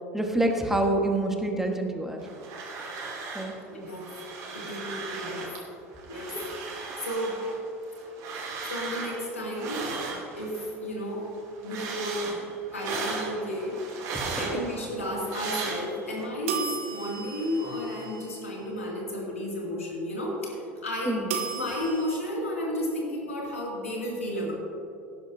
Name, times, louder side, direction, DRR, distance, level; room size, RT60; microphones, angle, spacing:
voice 1, 0.1-2.2 3.3-3.5 6.3-6.5 14.1-14.4 21.1-21.3, right 1 dB, 5° right, 3 dB, 1.5 m, -27 dB
sound 1, 2.2-3.6 3.8-5.6 6.0-10.7 11.1-16.2, right 4 dB, 50° right, 2.9 m, -37 dB
voice 2, 3.7-4.1 4.5-5.5 6.1-6.3 7.0-7.4 8.6-9.8 10.4-11.3 11.6-12.3 12.7-13.8 14.3-21.2 21.6-24.5, left 1 dB, 90° left, -3 dB, 2.5 m, -32 dB
sound 2, 16.5-18.7 21.3-22.2, right 7 dB, 70° right, 1.2 m, -35 dB
18.0 x 10.5 x 2.8 m, 2.6 s
figure-of-eight pair, 75°, 7 cm